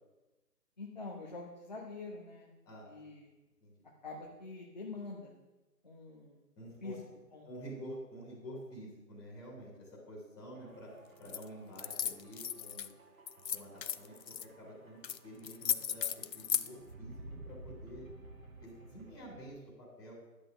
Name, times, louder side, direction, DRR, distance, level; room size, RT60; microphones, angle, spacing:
voice 1, 0.8-2.5 2.8-3.3 4.0-5.4 5.8-6.4 6.8-7.0 7.3-7.5, left 3 dB, 25° left, -2 dB, 0.9 m, -45 dB
voice 2, 6.5-6.9 7.4-10.9 11.2-12.9 13.5-18.1 18.6-20.1, equal, 5° left, -10 dB, 2.5 m, -49 dB
sound 1, 10.5-19.5, right 2 dB, 55° right, 1.7 m, -54 dB
sound 2, 11.3-11.4 11.8-12.9 13.3-14.5 15.0-15.2 15.4-16.7, left 9 dB, 85° left, 0.7 m, -35 dB
11.5 x 8.1 x 3.9 m, 1.1 s
figure-of-eight pair, 165°, 49 cm